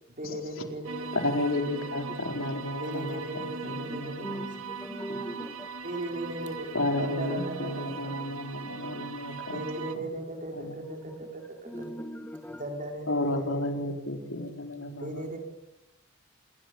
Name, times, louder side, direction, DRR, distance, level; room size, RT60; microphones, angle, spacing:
voice 1, 0.1-1.5 2.8-4.3 5.8-8.3 9.4-11.9 12.6-13.9 15.0-15.4, right 1 dB, 40° right, 3 dB, 5.5 m, -38 dB
sound 1, 0.8-9.9, right 5 dB, 85° right, 2.3 m, -40 dB
voice 2, 1.1-4.4 6.7-9.6 9.9-10.0 10.5-10.8 13.1-15.3, left 1 dB, 75° left, 4 dB, 4.5 m, -32 dB
voice 3, 3.9-5.7 7.4-8.0 10.9-11.3 11.7-12.6 13.9-14.0, equal, 10° left, 5 dB, 1.9 m, -40 dB
27.0 x 23.0 x 8.8 m, 0.92 s
head